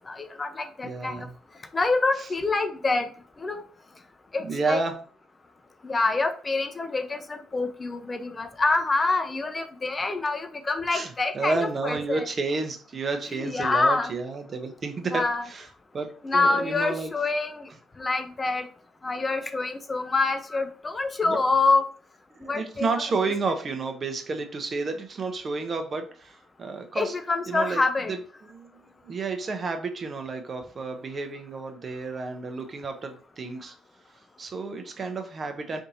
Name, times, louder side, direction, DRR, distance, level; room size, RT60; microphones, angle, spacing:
voice 1, 0.1-1.1 1.7-3.1 3.4-3.6 4.3-4.8 5.8-11.6 11.8-12.2 13.4-14.1 15.1-15.4 16.2-17.6 18.0-18.6 19.0-21.8 22.5-22.9 27.0-28.1, left 3 dB, 30° left, 8 dB, 0.7 m, -26 dB
voice 2, 0.8-1.3 2.2-2.3 4.4-5.0 10.9-15.7 15.9-17.1 21.2-21.4 22.4-27.2 27.5-27.8 28.1-33.7 34.4-35.8, right 3 dB, 45° right, 6 dB, 0.8 m, -31 dB
3.5 x 2.7 x 4.1 m, 0.42 s
supercardioid pair, 70°, 0 cm